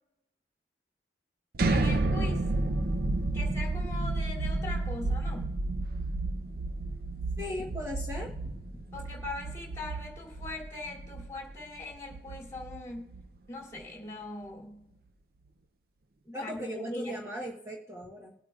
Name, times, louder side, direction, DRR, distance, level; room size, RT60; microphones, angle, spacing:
sound 1, 1.5-13.4, right 2 dB, 55° right, 0.6 m, -31 dB
voice 1, 1.7-2.4 3.3-5.5 8.9-13.0 13.5-14.8 16.2-17.2, left 2 dB, 15° left, -1 dB, 2.9 m, -41 dB
voice 2, 7.4-8.5 16.3-18.3, equal, 15° right, -2 dB, 1.1 m, -38 dB
21.0 x 8.5 x 2.4 m, 0.90 s
head